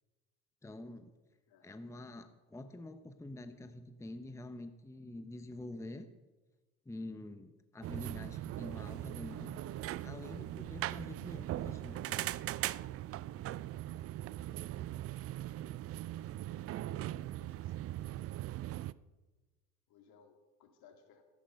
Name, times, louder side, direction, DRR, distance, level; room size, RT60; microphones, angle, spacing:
voice 1, 0.6-1.1 1.6-6.1 6.9-9.6 10.0-12.3, left 1 dB, 5° left, 9 dB, 0.8 m, -47 dB
sound 1, 7.8-18.9, right 14 dB, 35° right, 0.4 m, -40 dB
voice 2, 14.5-14.9 17.3-18.2 19.9-21.2, left 6 dB, 55° left, 4 dB, 2.6 m, -64 dB
14.0 x 9.7 x 5.6 m, 1.2 s
hypercardioid pair, 70°, 44 cm